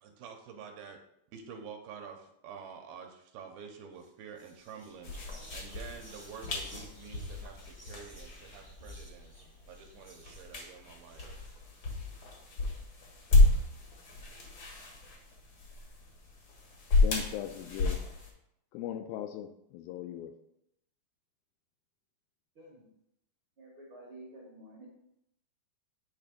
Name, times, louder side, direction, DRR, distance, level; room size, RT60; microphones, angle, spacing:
voice 1, 0.0-1.0 1.3-5.1 5.5-9.4 9.7-11.2, right 6 dB, 80° right, 4 dB, 2.4 m, -48 dB
Whispering, 3.9-4.1 4.4-12.4, equal, 25° left, 0.7 m, -54 dB
sound 1, 5.0-18.3, left 2 dB, 65° left, 1.2 m, -31 dB
voice 2, 17.0-18.0 18.7-20.3, left 11 dB, 80° left, 6 dB, 2.2 m, -39 dB
voice 3, 23.6-24.9, right 1 dB, 65° right, -5 dB, 1.3 m, -50 dB
8.8 x 3.3 x 5.1 m, 0.77 s
omnidirectional pair, 4.4 m